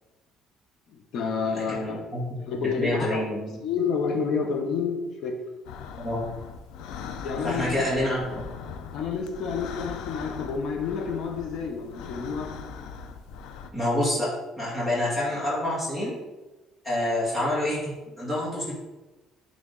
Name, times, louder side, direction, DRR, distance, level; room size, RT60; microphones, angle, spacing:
voice 1, 0.9-2.0 2.5-3.2 3.6-5.4 7.2-8.2 8.9-12.5, left 5 dB, 55° left, 4 dB, 1.0 m, -29 dB
voice 2, 1.4-3.6 6.0-6.3 7.4-8.4 13.7-16.2 16.8-17.9 18.2-18.7, left 1 dB, 5° left, -8 dB, 2.3 m, -28 dB
sound 1, 5.6-13.7, left 6 dB, 85° left, 0.6 m, -40 dB
9.8 x 3.4 x 4.0 m, 1.1 s
cardioid pair, 155°, 0 cm